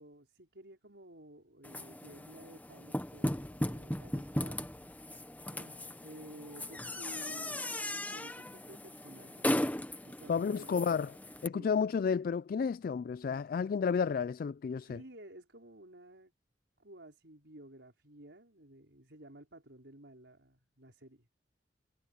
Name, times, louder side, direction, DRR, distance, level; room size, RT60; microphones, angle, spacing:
voice 1, 0.0-4.6 5.5-9.5 10.0-10.7 11.5-11.8 13.2-13.4 14.8-16.3 16.8-21.3, right 1 dB, 80° right, 5.0 m, -54 dB
sound 1, 1.6-11.5, left 1 dB, 10° left, 1.0 m, -37 dB
voice 2, 10.3-11.2 11.4-15.0, left 6 dB, 55° left, 0.3 m, -31 dB
head